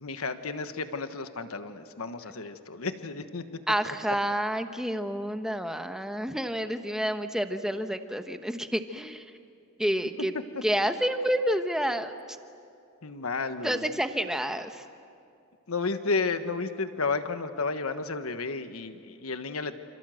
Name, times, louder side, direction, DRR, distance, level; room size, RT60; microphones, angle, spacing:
voice 1, 0.0-3.4 13.0-13.8 15.7-19.7, left 4 dB, 80° left, 9 dB, 1.3 m, -32 dB
voice 2, 3.7-9.2 9.8-10.3 10.6-12.1 13.6-14.8, equal, 5° right, 7 dB, 1.1 m, -29 dB
28.0 x 27.5 x 7.8 m, 2.5 s
head